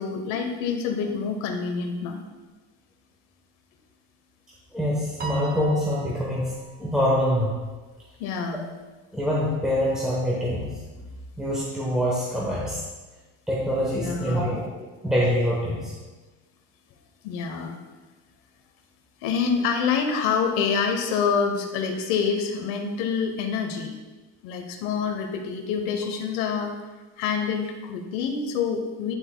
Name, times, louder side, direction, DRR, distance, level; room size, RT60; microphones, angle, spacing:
voice 1, 0.0-2.2 8.2-8.7 14.0-14.6 17.2-17.8 19.2-23.9 24.4-26.7 27.2-29.1, left 6 dB, 70° left, 5 dB, 1.0 m, -27 dB
voice 2, 4.7-6.5 6.8-7.6 9.1-10.7 11.4-12.8 13.5-14.6 15.0-15.9, equal, ahead, -6 dB, 1.0 m, -25 dB
Piano, 5.2-7.7, right 3 dB, 25° right, 0.9 m, -40 dB
9.9 x 8.0 x 2.2 m, 1.2 s
cardioid pair, 160°, 34 cm